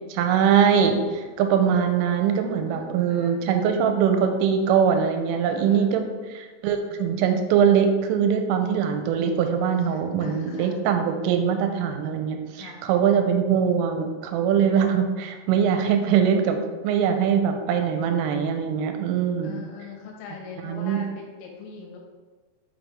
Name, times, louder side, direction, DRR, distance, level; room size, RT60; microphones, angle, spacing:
voice 1, 0.1-16.6 16.8-19.6 20.6-21.0, right 7 dB, 85° right, 5 dB, 3.2 m, -22 dB
voice 2, 2.6-3.4 5.4-5.8 9.8-10.7 12.5-12.8 19.4-22.0, left 5 dB, 85° left, -1 dB, 3.5 m, -41 dB
7.1 x 5.9 x 3.5 m, 1.3 s
omnidirectional pair, 5.9 m